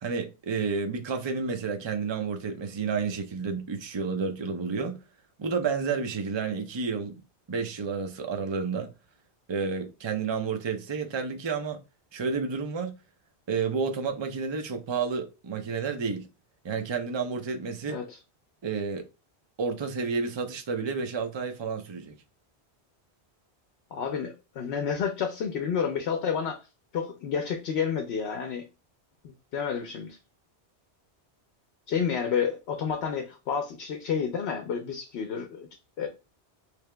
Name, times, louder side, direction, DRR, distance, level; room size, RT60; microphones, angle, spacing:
voice 1, 0.0-5.0 5.4-7.2 7.5-8.9 9.5-11.8 12.1-13.0 13.5-16.3 16.6-18.0 18.6-19.0 19.6-22.1, right 5 dB, 35° right, 0.5 m, -30 dB
voice 2, 17.9-18.2 23.9-26.7 26.9-28.7 29.2-30.2 31.9-35.7 36.0-36.1, left 7 dB, 70° left, 0.9 m, -30 dB
3.4 x 2.8 x 3.2 m
omnidirectional pair, 1.1 m